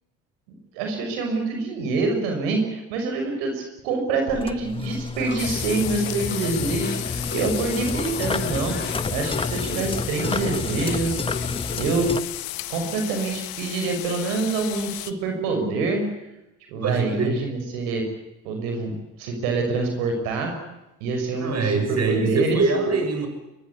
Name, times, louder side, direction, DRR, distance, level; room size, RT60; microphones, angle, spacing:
voice 1, 0.5-8.8 9.1-11.3 11.7-12.1 12.7-16.0 16.7-18.0 18.4-18.9 19.2-20.5 21.0-22.6, right 3 dB, 80° right, 4 dB, 6.3 m, -26 dB
sound 1, 4.3-12.2, left 3 dB, 15° left, 1.4 m, -31 dB
sound 2, 5.2-11.8, left 4 dB, 30° left, 3.4 m, -34 dB
sound 3, 5.4-15.1, left 17 dB, 70° left, 1.7 m, -34 dB
voice 2, 16.8-17.4 21.4-23.3, right 3 dB, 45° right, 7 dB, 7.1 m, -23 dB
23.0 x 22.5 x 8.5 m, 0.95 s
hypercardioid pair, 70°, 37 cm